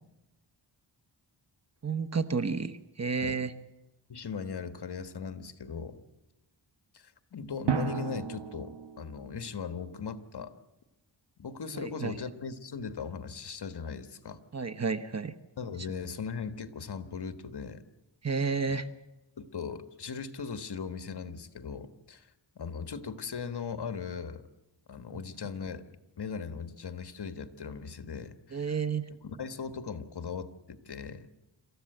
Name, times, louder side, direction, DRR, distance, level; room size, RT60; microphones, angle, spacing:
voice 1, 1.8-3.5 11.7-12.1 14.5-15.3 18.2-18.9 25.1-25.2 28.5-29.1, right 5 dB, 35° right, 13 dB, 1.1 m, -31 dB
voice 2, 4.1-6.0 6.9-10.5 11.4-14.4 15.6-17.8 19.4-22.3 22.5-24.4 24.9-25.8 26.2-28.8 29.2-31.3, left 5 dB, 60° left, 11 dB, 1.5 m, -39 dB
Drum, 4.4-4.5 7.7-9.5, right 5 dB, 60° right, 1.7 m, -33 dB
27.0 x 14.0 x 7.9 m, 0.97 s
wide cardioid pair, 80°, 46 cm